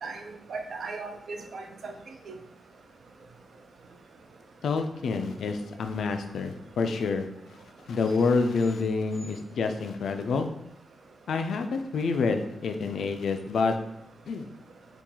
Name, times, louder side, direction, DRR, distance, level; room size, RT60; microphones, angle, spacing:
voice 1, 0.0-1.9 2.3-2.4, right 3 dB, 65° right, 4 dB, 0.4 m, -37 dB
voice 2, 4.6-7.3 7.9-10.5 11.3-13.8 14.3-14.5, left 4 dB, 85° left, 7 dB, 0.3 m, -28 dB
2.9 x 2.3 x 3.7 m, 0.78 s
wide cardioid pair, 165°, 0 cm